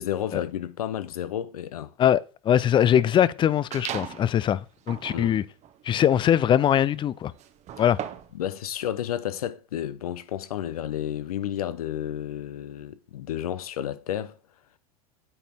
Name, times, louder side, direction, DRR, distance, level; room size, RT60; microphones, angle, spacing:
voice 1, 0.0-1.9 5.1-5.4 8.3-14.4, left 11 dB, 80° left, 0.7 m, -31 dB
voice 2, 2.0-4.6 4.9-5.4 5.8-7.3 7.8-8.0, left 10 dB, 25° left, 0.4 m, -21 dB
sound 1, 3.7-4.3 4.8-8.4, right 10 dB, 40° right, 0.9 m, -38 dB
8.7 x 4.3 x 4.3 m
hypercardioid pair, 95°, 19 cm